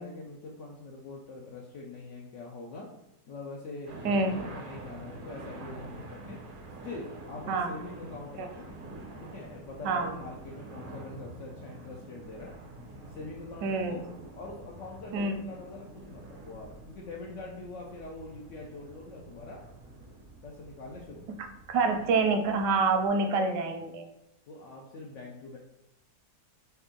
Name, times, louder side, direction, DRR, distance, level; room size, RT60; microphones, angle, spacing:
voice 1, 0.0-2.9 3.3-6.4 6.8-8.7 9.2-12.6 13.1-14.0 14.3-19.6 20.4-21.3 23.7-23.8 24.5-25.6, left 3 dB, 70° left, -1 dB, 0.7 m, -44 dB
sound 1, 3.9-23.1, right 2 dB, 55° right, 0.5 m, -47 dB
voice 2, 4.0-4.4 7.5-7.7 8.4-8.5 9.8-10.1 13.6-14.0 15.1-15.4 21.7-24.1, right 3 dB, 90° right, 6 dB, 1.2 m, -26 dB
3.3 x 2.8 x 3.6 m, 0.89 s
omnidirectional pair, 1.8 m